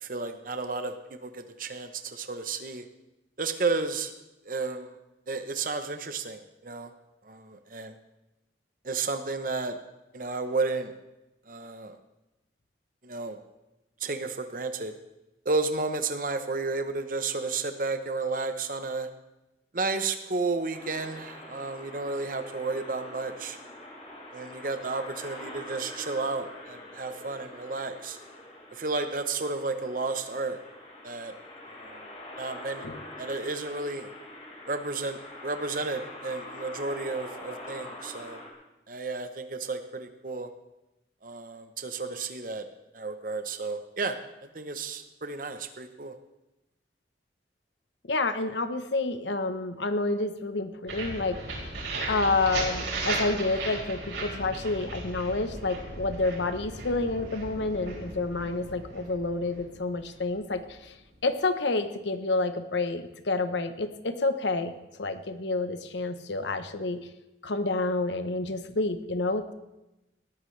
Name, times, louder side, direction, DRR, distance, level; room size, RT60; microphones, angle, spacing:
voice 1, 0.0-2.8 3.4-4.1 4.4-5.0 5.3-6.9 7.2-8.0 8.8-9.8 10.1-10.9 11.5-12.0 13.0-13.4 14.0-15.0 15.4-19.1 19.7-23.6 24.3-28.2 28.7-30.6 31.0-31.3 31.8-32.1 32.4-32.9 33.2-34.1 34.7-38.4 38.9-40.5 41.2-42.7 42.9-44.2 44.5-46.2, right 3 dB, 50° right, 8 dB, 0.9 m, -32 dB
sound 1, 20.7-38.5, left 1 dB, 35° left, 3.5 m, -44 dB
voice 2, 48.1-51.4 52.1-61.0 61.2-67.1 67.4-69.5, left 3 dB, 85° left, 10 dB, 1.0 m, -29 dB
sound 2, 50.9-60.7, right 2 dB, 90° right, 4.7 m, -36 dB
19.5 x 13.5 x 3.3 m, 0.96 s
head